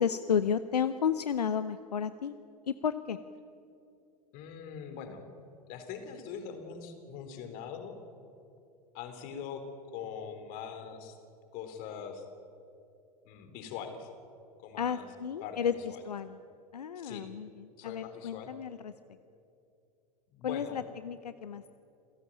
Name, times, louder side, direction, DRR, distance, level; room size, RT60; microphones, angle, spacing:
voice 1, 0.0-2.4 2.7-3.2 14.8-15.7 16.0-16.4 16.7-18.9 20.4-21.7, left 7 dB, 80° left, 13 dB, 0.8 m, -32 dB
voice 2, 4.3-5.2 5.7-8.0 8.9-9.6 9.9-11.2 11.5-12.2 13.3-14.1 14.6-15.1 15.4-15.6 15.9-16.0 17.0-17.3 17.8-18.5 20.3-20.8, left 7 dB, 45° left, 8 dB, 3.8 m, -42 dB
28.0 x 16.5 x 9.0 m, 2.6 s
figure-of-eight pair, 95°, 20 cm